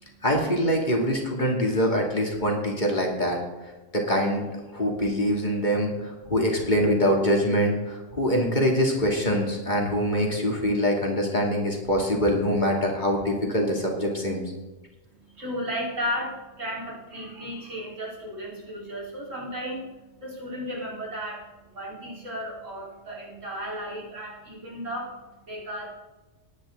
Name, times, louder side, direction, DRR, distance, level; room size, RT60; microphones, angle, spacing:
voice 1, 0.2-3.4 3.9-4.4 4.7-14.4, equal, 35° left, 0 dB, 2.6 m, -24 dB
voice 2, 15.0-25.9, equal, 85° right, -5 dB, 4.5 m, -35 dB
19.0 x 9.5 x 3.9 m, 1.1 s
omnidirectional pair, 1.3 m